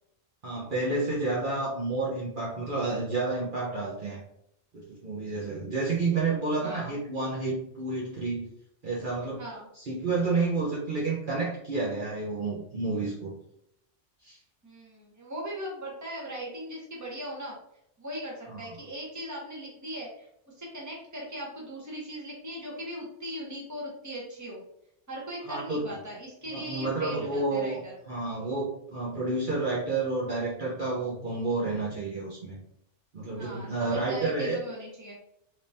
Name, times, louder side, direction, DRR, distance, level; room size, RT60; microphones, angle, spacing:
voice 1, 0.4-4.2 4.7-8.5 8.8-9.4 9.7-13.3 14.2-14.4 18.5-18.7 25.5-25.8 26.5-32.6 33.1-34.6, right 3 dB, 50° right, -6 dB, 0.9 m, -30 dB
voice 2, 6.6-7.0 9.4-9.7 14.6-17.6 18.0-24.6 25.1-27.9 33.3-35.1, right 1 dB, 15° right, -4 dB, 1.0 m, -39 dB
3.4 x 2.9 x 2.6 m, 0.75 s
omnidirectional pair, 1.2 m